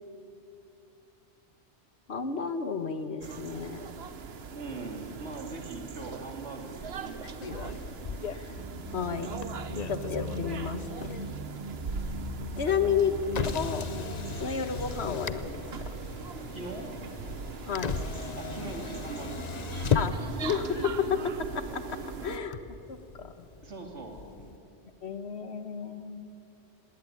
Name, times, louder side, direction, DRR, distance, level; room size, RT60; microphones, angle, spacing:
voice 1, 2.1-3.9 8.3-8.5 8.9-9.3 9.9-10.8 11.2-11.3 12.6-13.1 13.5-13.8 14.4-15.6 15.9-16.0 17.6-17.9 19.9-22.0 22.2-23.3 25.0-26.3, left 6 dB, 70° left, 10 dB, 1.5 m, -32 dB
sound 1, 3.2-22.4, right 5 dB, 65° right, 1.2 m, -41 dB
voice 2, 4.5-7.6 12.6-13.0 13.4-13.6 16.5-17.0 18.4-19.9 23.6-24.6, right 3 dB, 90° right, 3 dB, 3.0 m, -41 dB
Motor vehicle (road), 7.4-24.6, left 6 dB, 45° left, 0.7 m, -37 dB
sound 2, 8.6-14.4, equal, 35° right, 1.0 m, -40 dB
18.5 x 17.5 x 9.9 m, 2.6 s
omnidirectional pair, 1.1 m